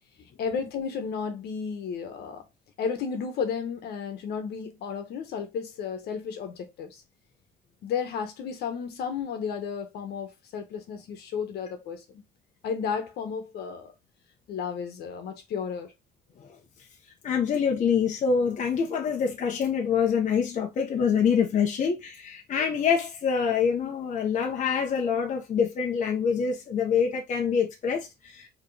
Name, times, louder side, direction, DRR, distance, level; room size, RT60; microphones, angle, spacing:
voice 1, 0.4-2.4 2.8-7.0 7.8-12.2 12.6-13.9 14.5-15.9, left 6 dB, 70° left, 1.3 m, -33 dB
voice 2, 17.2-28.5, left 6 dB, 45° left, 1.0 m, -25 dB
4.6 x 3.3 x 3.3 m
cardioid pair, 110°, 17 cm